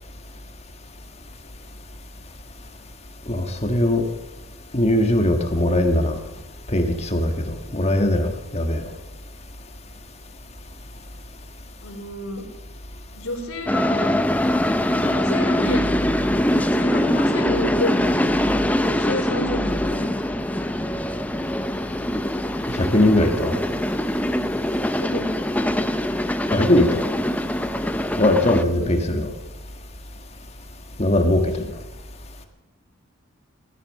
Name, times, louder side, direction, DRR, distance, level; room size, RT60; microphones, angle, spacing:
voice 1, 3.3-4.0 4.7-6.1 6.7-8.9 22.7-23.6 26.5-27.0 28.2-29.3 31.0-31.7, left 1 dB, 30° left, 1.5 m, -20 dB
voice 2, 11.8-12.4 13.1-14.2 14.9-15.9 16.5-18.4 18.9-20.1 25.0-25.4 28.8-29.0 31.6-31.8, left 1 dB, 85° left, 3.4 m, -30 dB
sound 1, 13.7-28.6, left 1 dB, 5° left, 0.5 m, -23 dB
17.5 x 12.5 x 6.5 m
head